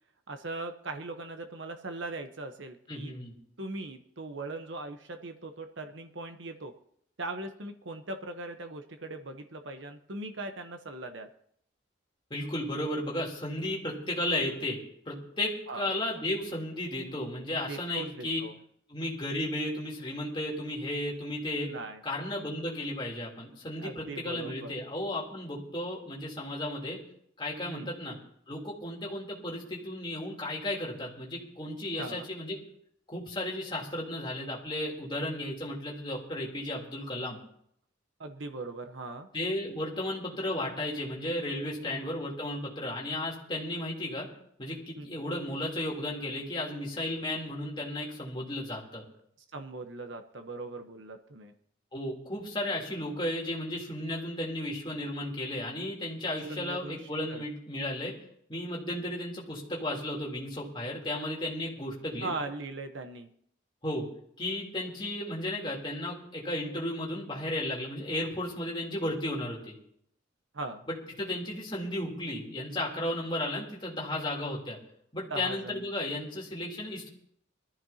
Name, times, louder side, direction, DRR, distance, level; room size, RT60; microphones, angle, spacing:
voice 1, 0.3-3.1 3.6-6.7 7.2-11.3 15.7-15.9 17.6-18.5 21.6-22.0 23.8-24.7 27.6-27.9 32.0-32.3 38.2-39.3 41.8-42.1 45.0-45.2 49.5-51.5 56.5-57.4 61.1-61.2 62.2-63.3 70.5-70.9 75.3-75.9, right 2 dB, 75° right, 6 dB, 1.0 m, -40 dB
voice 2, 2.9-3.3 12.3-14.8 15.0-18.4 18.9-21.7 22.0-27.0 27.4-28.1 28.5-32.6 33.1-37.4 39.3-44.3 44.6-49.0 51.9-58.1 58.5-62.3 63.8-64.0 64.4-69.7 71.2-74.8 75.1-77.1, left 1 dB, 25° left, -3 dB, 3.4 m, -34 dB
22.0 x 14.0 x 2.9 m, 0.68 s
head